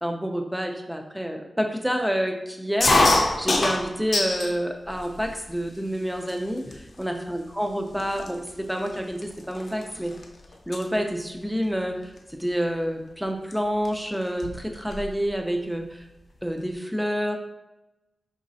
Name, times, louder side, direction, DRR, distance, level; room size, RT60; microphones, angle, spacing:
voice 1, 0.0-10.1 10.7-16.0 16.4-17.4, equal, 5° right, 3 dB, 0.5 m, -28 dB
sound 1, 2.8-4.5 5.0-5.6 6.3-6.4 6.6-7.0 7.7-7.8 8.0-10.2 10.5-10.8 12.2-12.4 13.5-13.6 13.8-13.9 14.2-15.1, left 2 dB, 55° left, 0.5 m, -24 dB
5.0 x 3.1 x 2.7 m, 0.98 s
wide cardioid pair, 115°, 0 cm